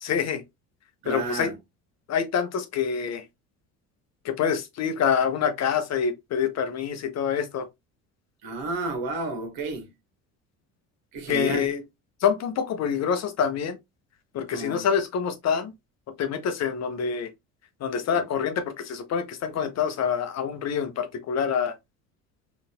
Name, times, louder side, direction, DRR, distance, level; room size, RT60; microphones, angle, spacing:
voice 1, 0.0-0.4 1.1-1.5 2.1-3.2 4.2-7.7 11.3-11.8 12.2-13.8 14.3-15.7 16.2-17.3 17.8-21.7, left 7 dB, 40° left, 0.7 m, -26 dB
voice 2, 1.0-1.5 8.4-9.9 11.1-11.7 14.5-14.9 18.1-18.2, right 3 dB, 60° right, 1.2 m, -32 dB
3.9 x 2.6 x 2.2 m
hypercardioid pair, 65°, 40 cm